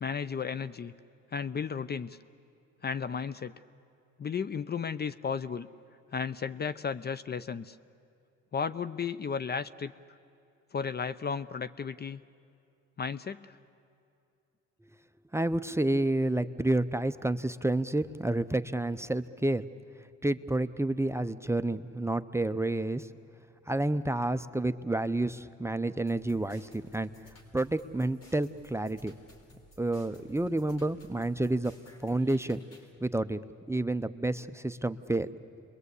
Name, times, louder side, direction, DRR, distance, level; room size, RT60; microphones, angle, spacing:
voice 1, 0.0-0.9 1.3-2.2 2.8-3.5 4.2-5.7 6.1-7.8 8.5-9.9 10.7-12.2 13.0-13.5, left 6 dB, 35° left, 15 dB, 0.6 m, -34 dB
voice 2, 15.3-19.6 20.2-23.1 23.7-27.1 27.5-29.1 29.8-31.7 32.0-32.6 33.0-33.4 33.7-35.3, right 2 dB, 10° right, 11 dB, 0.6 m, -29 dB
sound 1, 26.1-32.9, left 1 dB, 55° left, 4.0 m, -57 dB
28.5 x 22.0 x 8.3 m, 2.5 s
cardioid pair, 90°, 30 cm